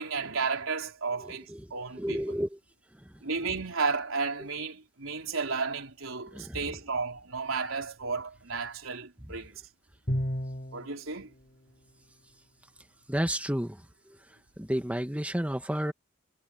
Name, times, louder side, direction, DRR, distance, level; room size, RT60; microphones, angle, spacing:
voice 1, 0.0-2.4 3.2-9.5 10.7-11.3, right 4 dB, 80° right, 3.7 m, -33 dB
voice 2, 2.0-2.6 6.3-6.6 13.1-13.8 14.6-15.9, equal, 5° right, 1.2 m, -30 dB
Bowed string instrument, 10.1-11.0, equal, 40° left, 7.2 m, -31 dB
head